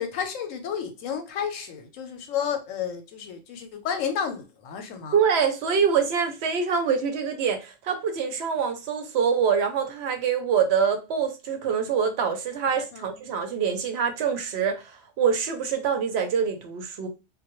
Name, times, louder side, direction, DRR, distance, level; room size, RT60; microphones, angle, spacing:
voice 1, 0.0-5.2 12.7-13.3, left 7 dB, 80° left, 1.0 m, -32 dB
voice 2, 5.1-17.1, right 6 dB, 65° right, 0.7 m, -25 dB
2.2 x 2.1 x 2.9 m
omnidirectional pair, 1.3 m